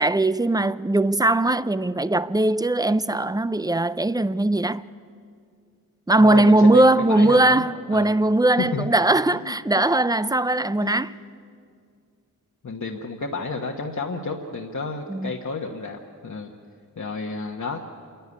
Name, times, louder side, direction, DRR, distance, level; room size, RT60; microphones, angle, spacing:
voice 1, 0.0-4.8 6.1-11.1 15.1-15.3, right 2 dB, 10° right, 0.5 m, -20 dB
voice 2, 6.2-8.1 8.6-8.9 9.4-9.6 10.2-10.3 10.8-11.0 12.6-16.5 17.0-17.8, left 3 dB, 55° left, 1.3 m, -31 dB
27.0 x 11.5 x 9.7 m
cardioid pair, 70°, 34 cm